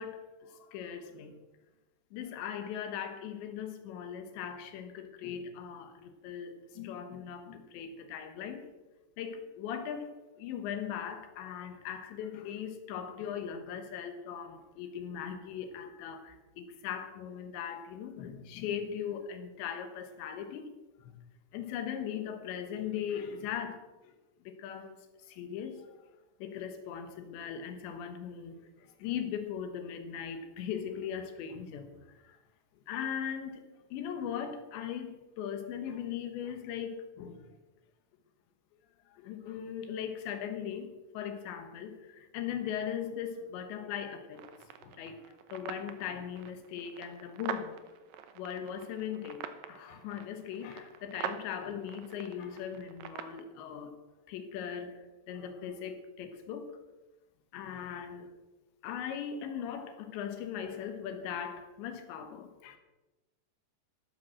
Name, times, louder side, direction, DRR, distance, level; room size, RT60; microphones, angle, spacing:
voice 1, 0.0-1.4 2.1-8.7 9.2-20.7 21.0-21.2 21.5-24.1 24.5-25.9 26.4-32.4 32.9-33.6 33.9-37.5 39.1-44.5 44.8-47.8 48.4-54.0 54.3-56.8 57.5-58.3 58.8-62.8, left 8 dB, 90° left, 7 dB, 3.7 m, -39 dB
sound 1, 44.3-53.4, right 9 dB, 70° right, 2.3 m, -45 dB
13.5 x 13.0 x 6.0 m, 1.1 s
omnidirectional pair, 5.0 m